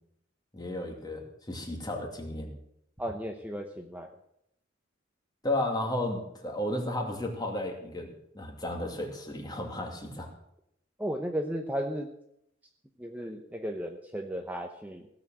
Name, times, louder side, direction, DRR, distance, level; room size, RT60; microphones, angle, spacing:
voice 1, 0.5-2.5 5.4-10.3, left 1 dB, 20° left, 2 dB, 2.5 m, -33 dB
voice 2, 3.0-4.1 11.0-12.1 13.0-15.1, equal, 10° right, 3 dB, 0.8 m, -35 dB
16.5 x 7.1 x 7.5 m, 0.76 s
head